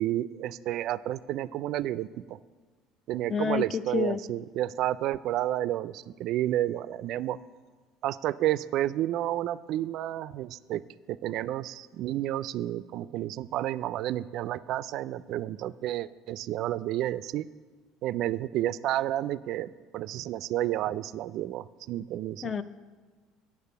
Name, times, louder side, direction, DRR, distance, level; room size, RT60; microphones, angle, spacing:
voice 1, 0.0-2.4 3.1-7.4 8.0-10.8 11.1-17.5 18.0-22.5, right 13 dB, 65° right, 18 dB, 0.3 m, -31 dB
voice 2, 3.3-4.2 22.4-22.6, left 6 dB, 35° left, 14 dB, 0.5 m, -29 dB
9.5 x 6.7 x 7.0 m, 1.4 s
supercardioid pair, 90°, 0 cm